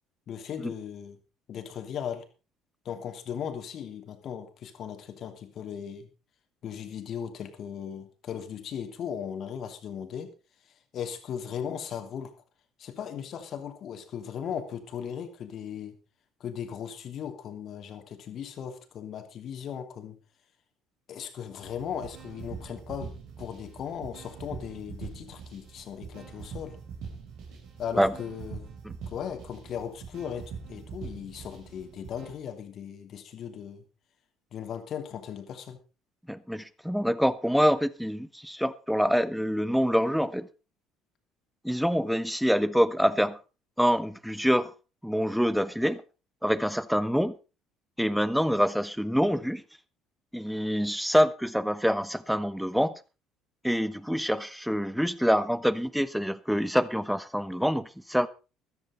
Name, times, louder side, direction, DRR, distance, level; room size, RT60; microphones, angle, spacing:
voice 1, 0.3-1.2 1.5-2.3 2.8-6.1 6.6-10.3 10.9-12.3 12.8-16.0 16.4-20.2 21.1-26.8 27.8-28.7 29.1-33.8 34.5-35.8, left 8 dB, 50° left, 2.8 m, -37 dB
sound 1, 21.6-32.3, right 5 dB, 55° right, 3.9 m, -43 dB
voice 2, 36.3-40.5 41.6-43.4 43.8-44.7 45.0-46.0 46.4-47.3 48.0-49.6 50.3-52.9 53.6-58.3, equal, ahead, 1.1 m, -26 dB
14.5 x 14.0 x 4.1 m
figure-of-eight pair, 55°, 0 cm